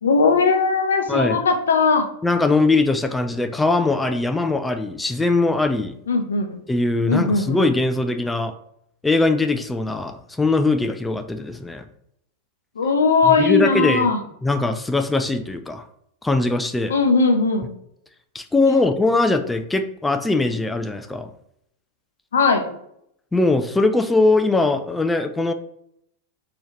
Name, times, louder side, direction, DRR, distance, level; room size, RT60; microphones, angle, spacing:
voice 1, 0.0-2.1 6.1-6.6 7.1-7.7 12.8-14.2 16.9-17.7 22.3-22.7, left 4 dB, 70° left, 5 dB, 0.6 m, -19 dB
voice 2, 2.2-6.0 6.7-8.5 9.0-11.8 13.3-14.1 14.4-15.9 16.2-16.9 18.3-21.3 23.3-25.5, left 2 dB, 10° left, 8 dB, 0.3 m, -21 dB
4.5 x 2.9 x 3.2 m, 0.73 s
figure-of-eight pair, 90°, 0 cm